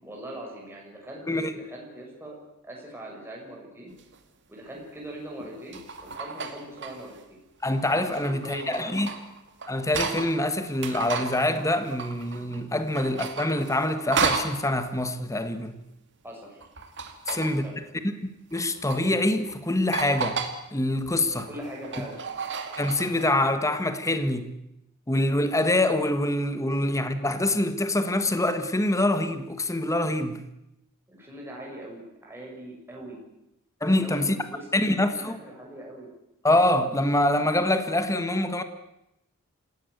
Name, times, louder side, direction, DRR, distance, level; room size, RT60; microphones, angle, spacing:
voice 1, 0.0-2.4 2.6-3.9 4.5-7.2 8.2-9.1 16.2-16.6 17.3-17.8 21.5-22.2 26.8-26.9 31.1-33.2 34.0-36.1, right 1 dB, 10° right, 6.5 m, -41 dB
sound 1, 4.0-4.2 5.4-7.2 7.6-10.4 10.7-12.6 12.9-14.6 16.6-17.6 18.5-19.0 19.5-19.6 19.9-20.6 21.0-23.3, right 5 dB, 55° right, 2.4 m, -33 dB
voice 2, 7.6-9.1 9.7-15.8 17.3-17.6 18.5-20.4 20.7-21.5 22.8-24.5 25.1-30.4 33.8-34.4 34.7-35.4 36.4-38.6, left 1 dB, 15° left, 1.5 m, -25 dB
27.5 x 17.0 x 8.1 m
head